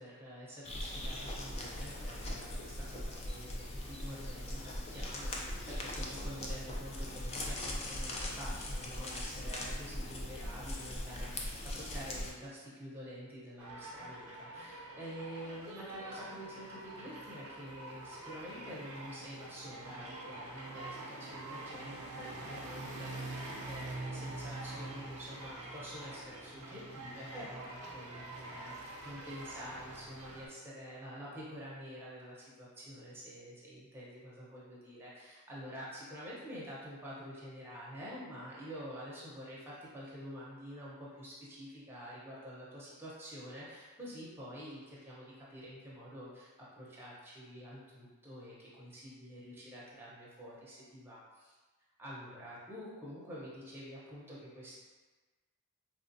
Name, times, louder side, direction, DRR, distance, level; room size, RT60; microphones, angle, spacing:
voice 1, 0.0-51.5 52.0-54.8, equal, 10° right, -7 dB, 0.7 m, -48 dB
sound 1, 0.6-12.3, left 1 dB, 30° left, 0.3 m, -40 dB
sound 2, 13.6-30.5, right 2 dB, 80° right, 0.5 m, -45 dB
3.4 x 2.4 x 2.6 m, 1.3 s
head